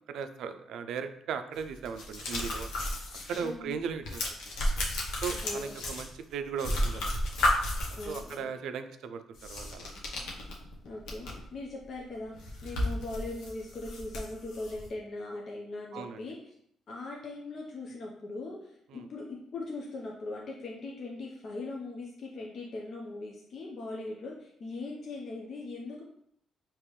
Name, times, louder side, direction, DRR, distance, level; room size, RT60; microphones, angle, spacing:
voice 1, 0.1-2.7 3.3-4.5 5.2-7.1 8.1-9.9 15.9-16.3 18.9-19.1, right 6 dB, 80° right, 9 dB, 0.4 m, -37 dB
sound 1, 1.6-3.5 3.8-6.3 6.6-8.3 9.3-11.5 11.8-11.9 12.3-14.9, left 1 dB, 85° left, 0.9 m, -33 dB
voice 2, 5.4-5.8 8.0-8.5 10.8-12.3 12.6-16.4 16.9-26.0, left 2 dB, 55° left, -2 dB, 0.6 m, -40 dB
5.0 x 2.9 x 3.1 m, 0.72 s
cardioid pair, 90°, 0 cm